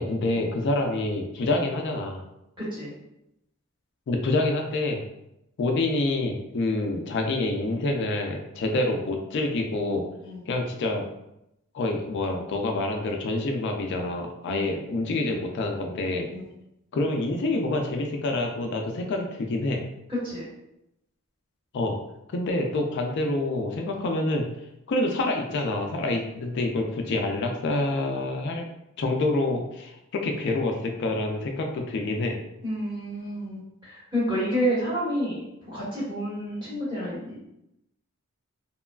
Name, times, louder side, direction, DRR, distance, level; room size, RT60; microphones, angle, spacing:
voice 1, 0.0-2.2 4.1-5.0 5.6-10.0 10.5-11.0 11.7-16.3 16.9-19.8 21.7-22.0 22.3-24.5 24.9-28.7 29.0-32.4, left 2 dB, 55° left, 3 dB, 0.3 m, -27 dB
voice 2, 2.6-2.9 10.2-10.4 14.5-14.6 16.3-16.5 20.1-20.4 32.6-37.4, equal, 20° right, -9 dB, 1.2 m, -30 dB
2.9 x 2.3 x 2.2 m, 0.85 s
head